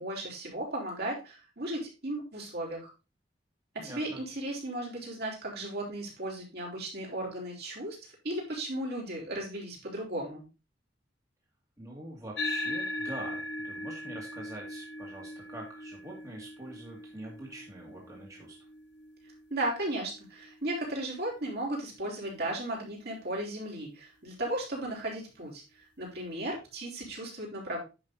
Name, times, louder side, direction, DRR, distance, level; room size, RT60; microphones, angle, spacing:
voice 1, 0.0-2.9 3.7-10.5 19.5-27.8, right 1 dB, 55° right, -2 dB, 3.9 m, -35 dB
voice 2, 3.8-4.2 11.8-18.6, right 1 dB, 20° right, -2 dB, 2.1 m, -44 dB
sound 1, 12.4-21.1, left 1 dB, 65° left, 1.0 m, -40 dB
10.0 x 5.7 x 4.0 m, 0.30 s
head